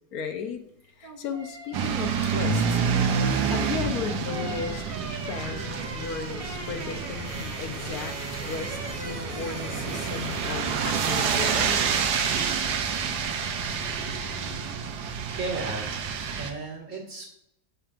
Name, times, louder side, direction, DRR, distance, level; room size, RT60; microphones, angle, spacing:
voice 1, 0.1-0.6 1.0-2.9 3.5-4.8 5.3-11.8, left 6 dB, 70° left, 6 dB, 1.2 m, -35 dB
sound 1, 0.8-10.8 11.1-11.3, right 1 dB, 25° right, 1.0 m, -40 dB
sound 2, 1.7-16.5, right 6 dB, 85° right, 1.3 m, -28 dB
voice 2, 15.1-17.2, right 3 dB, 50° right, -3 dB, 2.0 m, -35 dB
7.2 x 6.7 x 2.5 m, 0.77 s
omnidirectional pair, 1.7 m